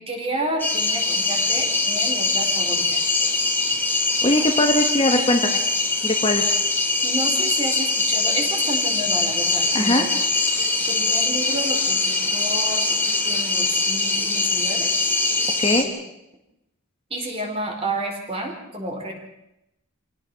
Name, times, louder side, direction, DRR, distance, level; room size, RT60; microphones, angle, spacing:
voice 1, 0.0-3.0 7.0-10.0 10.6-14.9 15.7-15.9 17.1-19.1, right 1 dB, 25° right, 2 dB, 4.5 m, -31 dB
sound 1, 0.6-15.8, left 3 dB, 10° left, 2.7 m, -22 dB
voice 2, 4.2-5.6 6.0-6.4 9.7-10.1 15.6-15.9, left 1 dB, 25° left, 4 dB, 1.6 m, -20 dB
25.5 x 17.0 x 6.2 m, 0.86 s
head